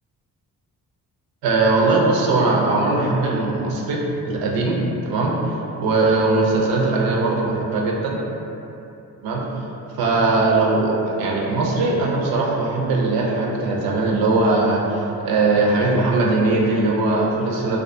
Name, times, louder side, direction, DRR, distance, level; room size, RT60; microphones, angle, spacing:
voice 1, 1.4-4.8 5.0-5.4 5.8-8.2 9.2-9.4 10.0-17.8, right 3 dB, 90° right, -2 dB, 0.5 m, -20 dB
2.3 x 2.3 x 2.5 m, 2.8 s
cardioid pair, 80°, 35 cm